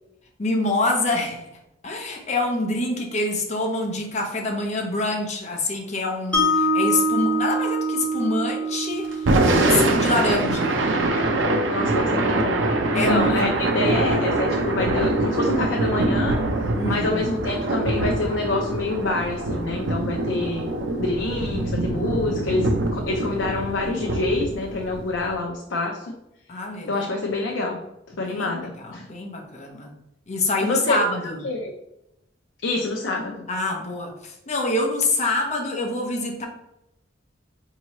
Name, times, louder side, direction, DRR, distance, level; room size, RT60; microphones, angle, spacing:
voice 1, 0.4-1.5 1.8-10.8 12.9-13.8 16.8-17.1 26.5-27.3 28.2-28.5 28.8-29.9 30.3-31.4 33.5-36.5, left 2 dB, 40° left, 1 dB, 0.7 m, -26 dB
Mallet percussion, 6.3-12.5, right 1 dB, 5° left, 0.8 m, -26 dB
Thunder / Rain, 9.1-25.4, right 2 dB, 85° right, 0.6 m, -24 dB
voice 2, 11.7-12.7 12.9-13.5 13.7-16.4 16.8-20.7 21.0-26.2 26.9-27.8 28.2-29.1 30.6-31.0 31.4-31.7 32.6-33.5, left 2 dB, 75° left, 1 dB, 0.5 m, -26 dB
4.6 x 2.8 x 3.0 m, 0.85 s
head